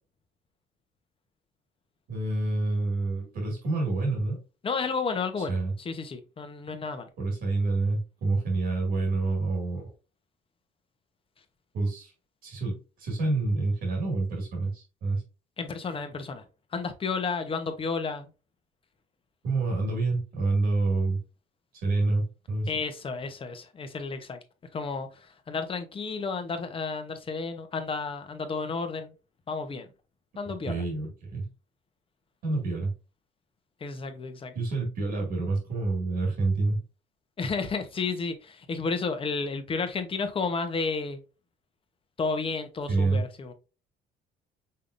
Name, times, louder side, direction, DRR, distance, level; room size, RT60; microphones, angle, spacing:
voice 1, 2.1-4.4 5.4-5.7 7.2-9.9 11.7-12.1 12.4-15.2 19.4-21.2 21.8-22.7 30.7-31.5 32.4-32.9 34.5-36.8 42.9-43.2, right 3 dB, 70° right, 2.4 m, -27 dB
voice 2, 4.6-7.1 15.6-16.4 16.7-18.3 22.7-24.4 24.7-29.1 29.5-29.9 30.4-30.8 33.8-34.5 37.4-41.2 42.2-43.5, left 4 dB, 30° left, 1.0 m, -32 dB
5.6 x 3.5 x 2.6 m
cardioid pair, 110°, 17 cm